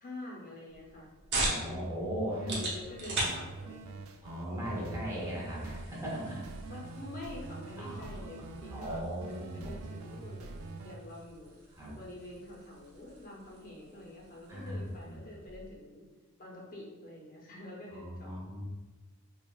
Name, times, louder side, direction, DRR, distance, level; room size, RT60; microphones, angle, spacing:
voice 1, 0.0-1.1 1.7-1.8 2.4-4.1 4.8-5.3 6.6-11.6 11.9-16.0 16.4-18.4, left 2 dB, 45° left, -3 dB, 0.8 m, -47 dB
sound 1, 0.7-15.8, right 2 dB, 55° right, 1.0 m, -42 dB
voice 2, 1.3-2.6 4.2-6.5 7.8-8.3 8.7-9.8 11.8-12.0 14.5-15.2 17.9-18.6, equal, 15° right, -5 dB, 0.9 m, -38 dB
sound 2, 2.3-11.0, right 3 dB, 80° right, 0.4 m, -45 dB
5.1 x 2.4 x 2.4 m, 1.2 s
head